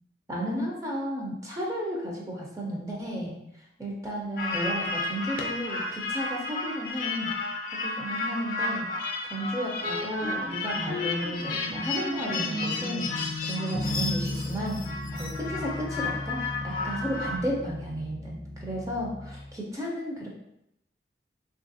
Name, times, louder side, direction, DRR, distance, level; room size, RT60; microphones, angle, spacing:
voice 1, 0.3-3.4 3.8-7.3 7.8-8.9 9.2-14.8 15.1-20.3, equal, 20° right, -3 dB, 0.5 m, -33 dB
sound 1, 4.4-17.4, left 3 dB, 50° left, 0.5 m, -33 dB
sound 2, 9.8-19.6, left 1 dB, 90° right, 0.9 m, -36 dB
3.2 x 2.4 x 2.6 m, 0.81 s
head